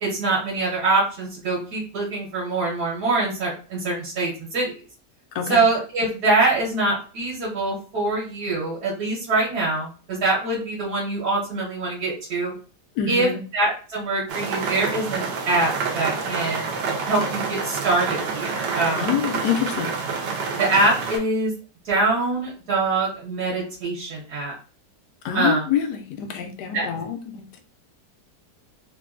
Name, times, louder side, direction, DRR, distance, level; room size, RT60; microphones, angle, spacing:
voice 1, 0.0-4.7 5.5-12.5 13.1-16.7 17.0-19.1 20.6-21.5 21.8-24.6 25.3-25.7 26.7-26.9, right 2 dB, 70° right, -6 dB, 1.5 m, -24 dB
voice 2, 13.0-13.4 19.0-19.9 25.2-27.6, left 8 dB, 80° left, 5 dB, 1.2 m, -26 dB
sound 1, 14.3-21.2, right 5 dB, 90° right, 1.3 m, -28 dB
3.4 x 2.2 x 2.3 m, 0.38 s
omnidirectional pair, 1.8 m